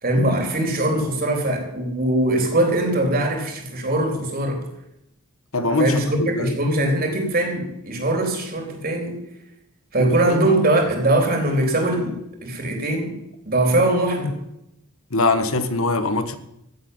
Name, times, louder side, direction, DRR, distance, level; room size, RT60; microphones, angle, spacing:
voice 1, 0.0-4.6 5.8-9.2 9.9-13.2 13.5-14.4, right 1 dB, 40° right, 3.8 m, -21 dB
voice 2, 5.5-6.5 10.0-10.4 15.1-16.4, left 2 dB, 70° left, 1.3 m, -22 dB
15.5 x 7.7 x 9.6 m
head